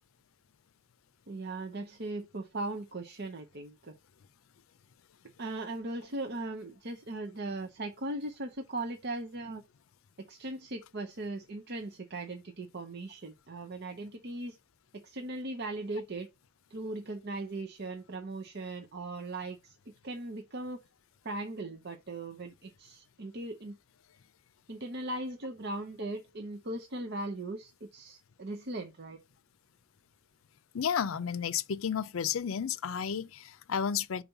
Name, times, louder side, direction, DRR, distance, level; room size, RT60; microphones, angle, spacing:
voice 1, 1.3-3.9 5.4-9.6 10.2-14.6 14.9-16.3 16.7-19.8 20.0-20.8 21.2-23.8 24.7-29.2, right 2 dB, 55° right, 0.8 m, -38 dB
voice 2, 30.7-34.2, left 7 dB, 80° left, 0.5 m, -32 dB
5.5 x 4.2 x 5.7 m
head